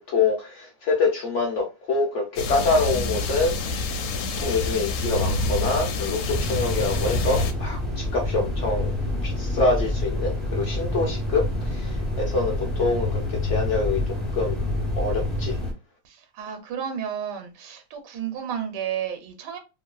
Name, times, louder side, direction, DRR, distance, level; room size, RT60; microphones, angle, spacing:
voice 1, 0.1-8.9 9.2-14.0 14.4-14.6 14.9-15.6, left 3 dB, 60° left, 0.8 m, -25 dB
sound 1, 2.4-7.5, left 3 dB, 75° left, 1.1 m, -27 dB
sound 2, 6.3-15.7, left 1 dB, ahead, 0.3 m, -27 dB
voice 2, 16.0-19.6, right 8 dB, 80° right, 1.3 m, -32 dB
2.9 x 2.7 x 2.3 m
omnidirectional pair, 1.8 m